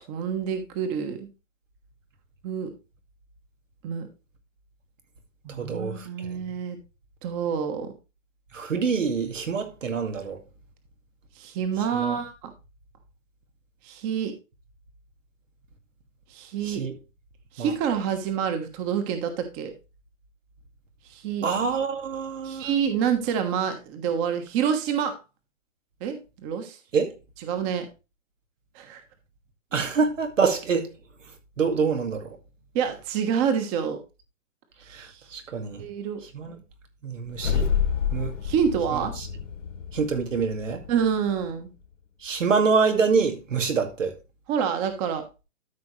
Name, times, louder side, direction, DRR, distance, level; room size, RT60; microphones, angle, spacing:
voice 1, 0.1-1.3 2.4-2.7 3.8-4.1 5.4-6.8 7.2-7.9 11.4-12.5 13.8-14.3 16.3-16.8 17.5-19.7 21.1-21.5 22.4-25.2 26.0-26.8 27.4-27.9 28.7-29.0 32.7-34.0 34.9-35.2 35.8-36.2 38.4-39.1 40.9-41.7 44.5-45.2, right 7 dB, 30° right, 1.2 m, -27 dB
voice 2, 5.6-6.1 8.5-10.4 11.9-12.2 16.6-16.9 17.6-17.7 21.4-22.7 26.9-27.1 29.7-30.9 31.6-32.2 34.9-35.1 35.3-35.8 36.3-36.5 37.0-37.7 38.1-38.3 39.9-40.8 42.2-44.1, right 5 dB, 85° right, 2.2 m, -25 dB
sound 1, 37.3-41.6, left 7 dB, 90° left, 2.0 m, -29 dB
13.0 x 5.2 x 3.2 m
hypercardioid pair, 145°, 37 cm